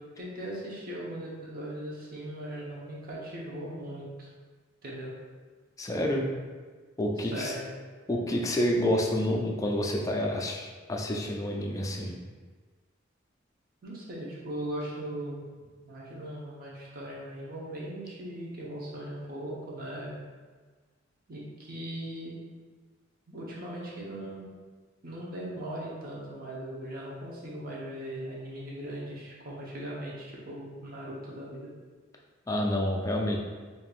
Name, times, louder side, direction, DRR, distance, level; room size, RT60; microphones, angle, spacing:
voice 1, 0.0-4.3 4.8-5.1 7.3-7.6 13.8-15.4 15.8-20.2 21.3-22.4 23.3-24.5 25.0-31.7, right 1 dB, 50° right, -5 dB, 0.9 m, -39 dB
voice 2, 5.8-6.3 7.0-7.5 8.1-12.1 32.5-33.4, left 1 dB, 15° left, 0 dB, 0.4 m, -28 dB
5.2 x 2.8 x 2.4 m, 1.5 s
head